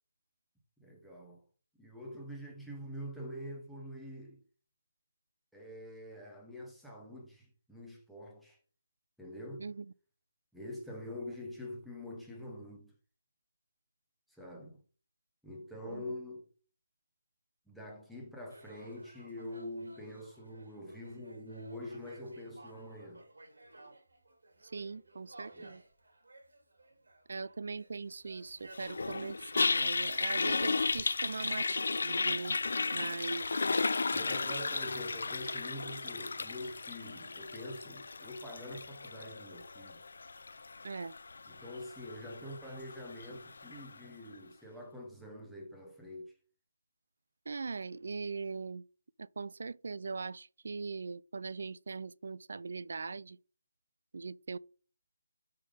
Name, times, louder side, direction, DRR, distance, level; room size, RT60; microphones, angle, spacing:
voice 1, 0.8-1.4 1.8-4.4 5.5-8.6 9.2-9.6 10.5-12.9 14.3-14.8 15.4-16.4 17.7-23.2 25.5-25.7 34.1-40.0 41.5-46.3, left 1 dB, ahead, 0.8 m, -45 dB
sound 1, 18.5-36.0, right 2 dB, 80° right, 2.5 m, -57 dB
voice 2, 24.7-25.8 27.3-33.6 40.8-41.1 47.5-48.9 49.2-53.4 54.1-54.6, right 4 dB, 45° right, 0.3 m, -40 dB
Toilet flush, 28.7-43.9, left 4 dB, 55° left, 0.3 m, -35 dB
5.8 x 5.2 x 5.0 m
hypercardioid pair, 180°, 0 cm